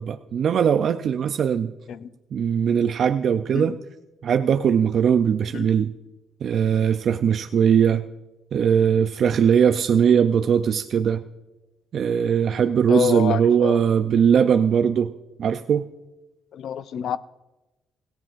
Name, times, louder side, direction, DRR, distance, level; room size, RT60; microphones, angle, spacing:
voice 1, 0.0-1.7 2.3-3.7 4.2-5.9 6.4-8.1 8.5-11.2 11.9-15.1 15.4-15.8, right 7 dB, 60° right, 0.4 m, -20 dB
voice 2, 12.9-13.8 16.5-17.2, left 9 dB, 70° left, 0.5 m, -27 dB
17.0 x 15.5 x 2.5 m
cardioid pair, 90°, 0 cm